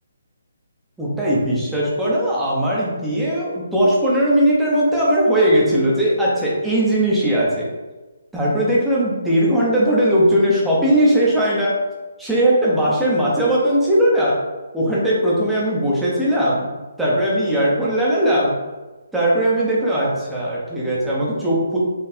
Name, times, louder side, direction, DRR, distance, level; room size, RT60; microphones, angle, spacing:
voice 1, 1.0-7.7 8.3-11.8 12.2-14.4 14.7-16.7 17.0-18.5 19.1-21.8, right 1 dB, 5° right, -7 dB, 0.8 m, -19 dB
4.2 x 2.4 x 4.2 m, 1.2 s
hypercardioid pair, 165°, 0 cm